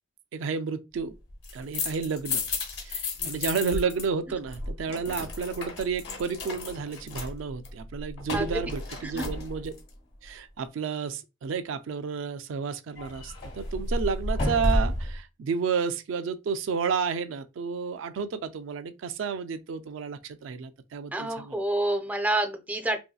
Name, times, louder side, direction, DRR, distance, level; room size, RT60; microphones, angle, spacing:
voice 1, 0.3-1.1 1.5-2.5 2.8-9.7 10.2-21.6, right 5 dB, 80° right, 0.4 m, -31 dB
sound 1, 1.3-4.1 4.3-9.9 13.0-15.2, left 2 dB, 60° left, 1.1 m, -32 dB
voice 2, 8.3-8.7 9.0-9.3 21.1-23.0, right 1 dB, 10° right, 0.4 m, -29 dB
3.0 x 2.7 x 2.2 m
head